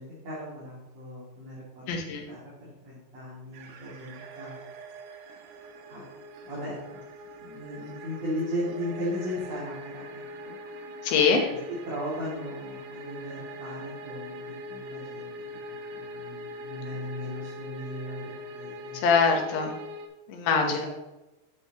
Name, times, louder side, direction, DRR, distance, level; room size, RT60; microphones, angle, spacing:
voice 1, 0.0-1.8 2.3-4.6 5.9-6.0 6.4-7.0 7.4-10.6 11.9-14.4 14.7-15.3 15.7-19.0 20.5-20.9, equal, 45° right, -9 dB, 3.2 m, -36 dB
voice 2, 1.9-2.2 11.0-11.5 18.9-19.8 20.3-20.9, left 5 dB, 85° left, 3 dB, 3.2 m, -23 dB
sound 1, 3.5-20.1, equal, 85° right, 2.8 m, -42 dB
10.0 x 7.0 x 3.0 m, 0.99 s
omnidirectional pair, 4.7 m